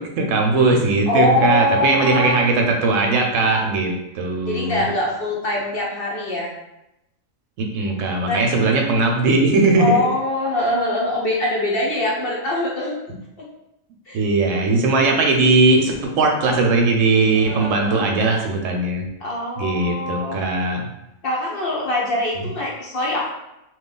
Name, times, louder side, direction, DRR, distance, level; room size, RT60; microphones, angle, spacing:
voice 1, 0.0-4.8 7.6-10.0 14.1-19.0 19.6-20.8, right 3 dB, 75° right, 2 dB, 0.9 m, -19 dB
voice 2, 1.1-2.5 4.4-6.5 8.2-8.4 9.8-13.0 13.4-13.5 14.1-14.2 17.3-18.1 19.2-20.4 21.2-23.3, left 1 dB, 50° left, -4 dB, 0.8 m, -23 dB
2.9 x 2.3 x 3.7 m, 0.89 s
omnidirectional pair, 1.4 m